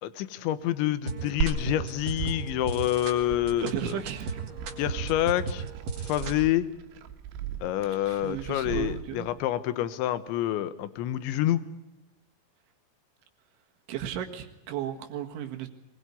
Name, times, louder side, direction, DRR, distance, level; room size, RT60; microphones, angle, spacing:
voice 1, 0.0-4.0 4.8-5.6 6.0-6.7 7.6-11.6, left 13 dB, 75° left, 14 dB, 3.2 m, -27 dB
sound 1, 1.0-6.4, right 4 dB, 45° right, 3.6 m, -36 dB
Glass, 1.4-9.4, right 7 dB, 90° right, 4.3 m, -38 dB
voice 2, 3.6-4.4 7.8-9.3 13.9-15.7, right 10 dB, 70° right, 4 dB, 3.9 m, -35 dB
23.5 x 21.0 x 9.7 m, 0.89 s
omnidirectional pair, 5.9 m